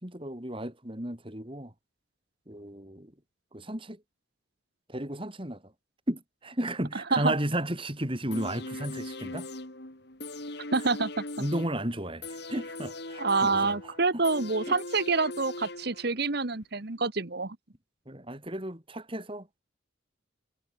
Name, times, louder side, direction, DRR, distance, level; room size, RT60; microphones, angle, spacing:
voice 1, 0.0-1.7 2.5-3.1 3.5-4.0 4.9-5.7 6.1-9.5 11.4-14.2 14.7-14.8 18.1-19.5, right 1 dB, 25° right, 3.7 m, -34 dB
sound 1, 8.3-16.3 16.6-16.7, left 2 dB, 55° left, 3.3 m, -40 dB
voice 2, 10.7-11.2 13.2-17.6, right 3 dB, 50° right, 1.3 m, -27 dB
head